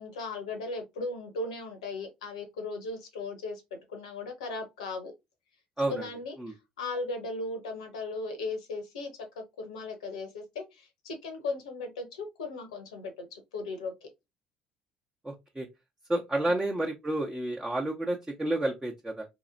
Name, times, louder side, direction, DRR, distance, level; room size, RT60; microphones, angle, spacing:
voice 1, 0.0-3.6 3.9-5.1 5.9-9.1 9.4-14.1 16.4-16.6, left 3 dB, 75° left, 0.8 m, -37 dB
voice 2, 15.2-15.7 16.1-19.3, right 1 dB, 15° right, 0.8 m, -30 dB
4.1 x 2.9 x 2.5 m
figure-of-eight pair, 55°, 4 cm